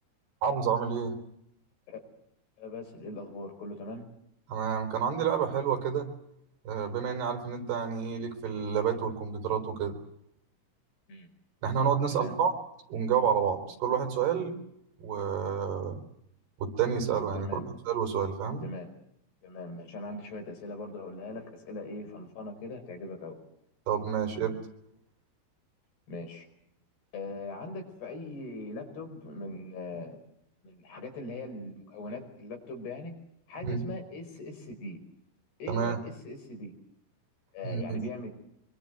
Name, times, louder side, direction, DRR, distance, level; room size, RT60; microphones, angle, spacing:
voice 1, 0.4-1.2 4.5-6.1 6.7-10.0 11.6-12.5 12.9-14.6 15.0-16.0 16.6-17.6 17.9-18.6 23.9-24.6 33.6-33.8 35.7-36.0 37.6-38.0, right 7 dB, 80° right, 7 dB, 6.1 m, -29 dB
voice 2, 2.6-4.0 11.1-11.3 12.1-12.4 17.3-17.7 18.6-18.9 19.4-23.4 26.1-26.5 27.1-30.2 30.6-33.1 33.5-35.0 35.6-36.7 37.5-38.3, left 2 dB, 85° left, 5 dB, 7.4 m, -40 dB
25.5 x 24.0 x 8.0 m, 0.75 s
omnidirectional pair, 4.6 m